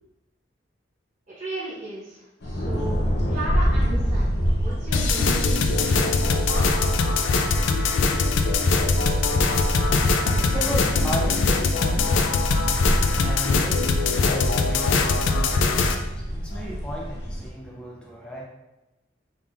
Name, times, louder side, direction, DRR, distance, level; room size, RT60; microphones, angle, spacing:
voice 1, 1.3-3.0 3.3-4.3 4.6-6.7, right 1 dB, 40° right, -11 dB, 1.2 m, -35 dB
sound 1, 2.4-17.5, equal, 60° left, 0.7 m, -27 dB
sound 2, 4.9-15.9, left 4 dB, 85° left, 0.4 m, -22 dB
voice 2, 10.0-18.4, right 1 dB, 5° left, -3 dB, 0.6 m, -35 dB
3.6 x 3.5 x 2.4 m, 1.0 s
head